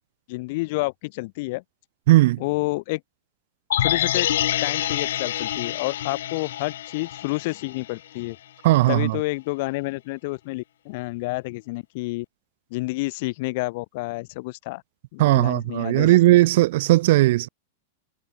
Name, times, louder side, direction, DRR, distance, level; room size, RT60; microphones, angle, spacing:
voice 1, 0.3-1.6 2.4-3.0 3.8-4.3 4.6-8.4 8.9-12.3 12.7-14.8 15.1-16.1, left 23 dB, 55° left, 4.3 m, -29 dB
voice 2, 2.1-2.4 8.6-9.2 15.2-17.5, right 17 dB, 60° right, 1.1 m, -17 dB
sound 1, 3.7-7.9 8.2-8.3, left 12 dB, 80° left, 3.2 m, -26 dB
supercardioid pair, 150°, 0 cm